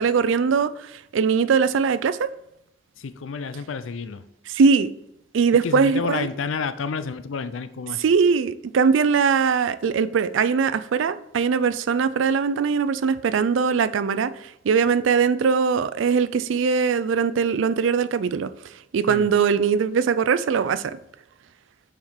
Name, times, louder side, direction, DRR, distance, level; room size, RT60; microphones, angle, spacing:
voice 1, 0.0-2.3 4.5-4.9 5.3-6.3 8.0-18.5 18.9-20.8, right 5 dB, 70° right, 0.4 m, -21 dB
voice 2, 3.0-4.2 5.6-8.0 19.1-19.3, left 5 dB, 80° left, 0.5 m, -30 dB
5.7 x 4.5 x 4.7 m
head